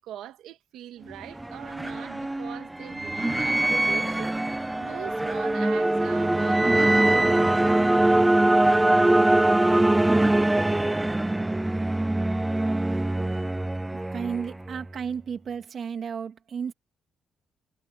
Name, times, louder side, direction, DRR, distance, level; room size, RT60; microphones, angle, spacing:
voice 1, 0.0-8.0, right 12 dB, 85° right, 1.9 m, -42 dB
sound 1, 1.1-14.8, right 1 dB, 10° right, 0.6 m, -23 dB
voice 2, 14.1-16.7, right 7 dB, 55° right, 2.2 m, -33 dB
cardioid pair, 90°, 0 cm